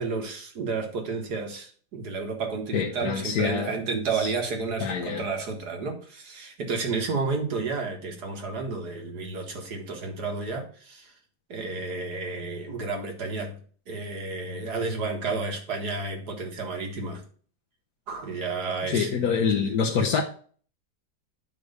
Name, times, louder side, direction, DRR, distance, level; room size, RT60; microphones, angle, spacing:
voice 1, 0.0-11.1 11.5-13.5 13.9-17.2 18.1-20.1, right 4 dB, 75° right, 2.2 m, -31 dB
voice 2, 2.7-3.8 4.1-4.3 4.8-5.2 18.8-20.2, left 6 dB, 65° left, 1.4 m, -26 dB
9.4 x 3.2 x 6.7 m
omnidirectional pair, 1.8 m